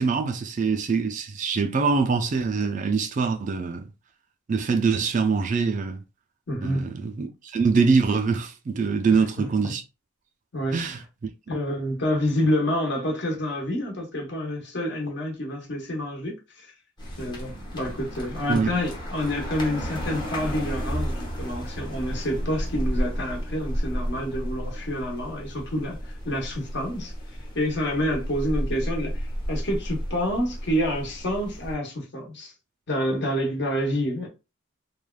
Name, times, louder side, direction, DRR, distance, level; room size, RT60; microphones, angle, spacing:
voice 1, 0.0-3.9 4.5-6.0 6.6-9.8 10.7-11.0 18.5-18.7, right 5 dB, 35° right, 0.3 m, -24 dB
voice 2, 6.5-7.0 9.1-9.8 10.5-10.9 11.5-16.7 17.2-27.1 27.5-32.5 32.9-34.3, equal, 55° left, 1.1 m, -28 dB
sound 1, 17.0-31.8, equal, 20° left, 0.8 m, -32 dB
3.2 x 2.2 x 2.2 m
head